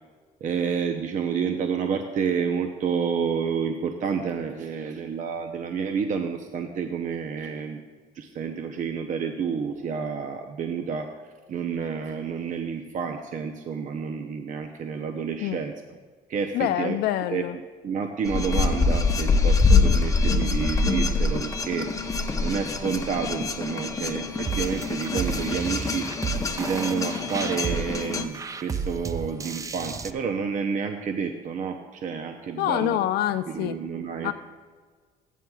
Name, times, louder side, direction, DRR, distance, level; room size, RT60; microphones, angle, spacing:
voice 1, 0.4-7.8 8.1-11.1 11.5-15.7 16.3-17.0 17.3-21.9 22.4-26.1 26.5-33.0 33.5-34.3, right 6 dB, 50° right, 6 dB, 0.7 m, -29 dB
voice 2, 16.5-17.6 32.6-33.8 34.2-34.3, left 13 dB, 70° left, 11 dB, 0.4 m, -26 dB
sound 1, 18.2-28.2, left 4 dB, 20° left, 0.7 m, -24 dB
sound 2, 24.5-30.1, right 5 dB, 20° right, 0.4 m, -33 dB
15.0 x 9.2 x 2.3 m, 1.5 s
cardioid pair, 110°, 17 cm